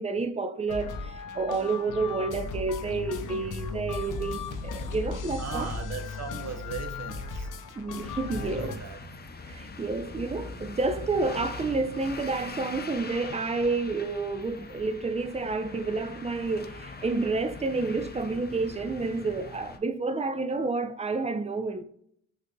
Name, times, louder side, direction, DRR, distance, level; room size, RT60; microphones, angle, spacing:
voice 1, 0.0-5.7 7.8-8.7 9.5-21.8, right 3 dB, 20° right, 0.5 m, -30 dB
sound 1, 0.7-8.8, left 4 dB, 70° left, 0.6 m, -36 dB
voice 2, 5.4-7.5 8.3-9.0, right 6 dB, 50° right, 0.8 m, -38 dB
sound 2, 8.0-19.8, left 3 dB, 30° left, 0.6 m, -42 dB
6.4 x 2.7 x 2.3 m
cardioid pair, 55°, 33 cm